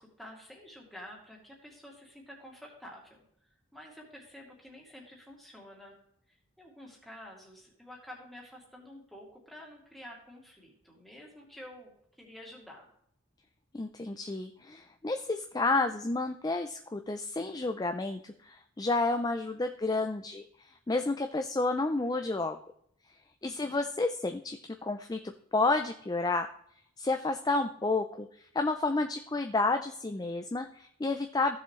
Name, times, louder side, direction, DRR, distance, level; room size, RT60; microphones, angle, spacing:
voice 1, 0.0-6.0 6.3-11.9 12.2-12.9 23.4-23.9, left 1 dB, ahead, -2 dB, 2.3 m, -50 dB
voice 2, 13.7-22.6 23.4-25.2 25.5-26.5 27.0-28.3 28.5-31.6, left 3 dB, 20° left, 7 dB, 0.4 m, -30 dB
15.0 x 6.9 x 3.1 m, 0.70 s
head